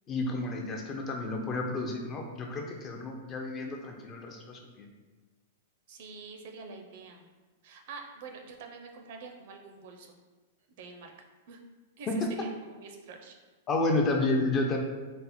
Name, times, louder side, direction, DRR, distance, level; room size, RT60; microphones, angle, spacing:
voice 1, 0.1-4.9 12.1-12.3 13.7-14.8, left 2 dB, 20° left, 2 dB, 0.4 m, -31 dB
voice 2, 5.9-7.2 7.6-10.2 10.8-11.1 11.5-11.6 12.0-13.4, right 4 dB, 50° right, 3 dB, 0.4 m, -46 dB
4.0 x 2.1 x 4.1 m, 1.3 s
supercardioid pair, 170°, 0 cm